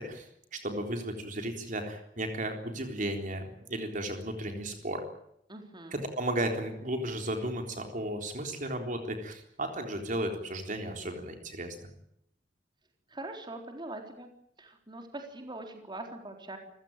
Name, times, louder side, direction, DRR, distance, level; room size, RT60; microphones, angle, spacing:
voice 1, 0.0-5.0 6.2-11.8, right 1 dB, 45° right, 4 dB, 3.8 m, -34 dB
voice 2, 5.5-6.1 13.1-14.3 14.6-16.6, right 2 dB, 25° right, 4 dB, 4.0 m, -42 dB
28.5 x 16.5 x 9.1 m, 0.75 s
head